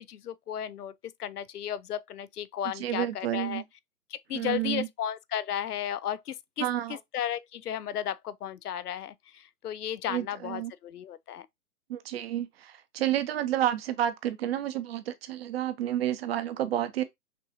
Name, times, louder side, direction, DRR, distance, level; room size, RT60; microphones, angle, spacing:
voice 1, 0.0-3.6 4.1-6.7 7.1-11.5, left 10 dB, 90° left, 0.6 m, -34 dB
voice 2, 2.8-3.6 4.3-4.9 6.6-7.0 10.1-10.7 11.9-17.0, right 12 dB, 40° right, 0.7 m, -30 dB
5.9 x 2.4 x 2.9 m
hypercardioid pair, 135°, 45 cm